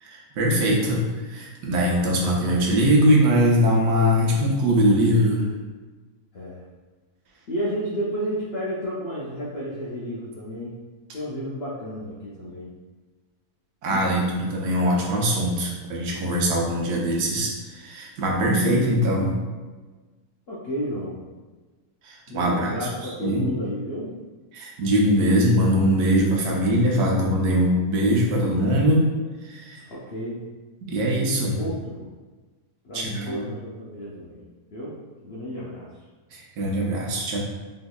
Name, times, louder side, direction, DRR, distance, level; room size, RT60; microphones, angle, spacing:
voice 1, 0.0-5.5 13.8-19.4 22.0-22.9 23.2-23.5 24.5-29.1 29.4-29.9 30.9-31.6 32.9-33.4 36.3-37.4, equal, 85° right, -2 dB, 1.2 m, -22 dB
voice 2, 7.5-10.7 11.1-12.7 13.9-14.4 18.3-18.4 20.5-21.2 22.3-24.1 29.9-30.4 31.6-32.1 32.8-34.4 34.7-35.0 35.2-35.9, equal, 65° left, -6 dB, 0.6 m, -32 dB
3.6 x 3.1 x 2.3 m, 1.3 s
omnidirectional pair, 1.6 m